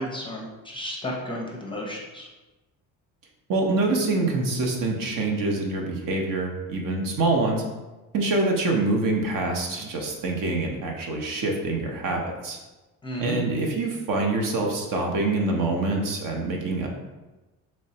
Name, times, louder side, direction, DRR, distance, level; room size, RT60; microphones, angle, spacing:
voice 1, 0.0-2.3 13.0-13.4, equal, 10° left, -2 dB, 0.6 m, -33 dB
voice 2, 3.5-7.6 8.1-12.6 13.2-16.9, right 2 dB, 50° right, 1 dB, 0.8 m, -25 dB
3.1 x 3.0 x 2.8 m, 1.1 s
supercardioid pair, 85°, 42 cm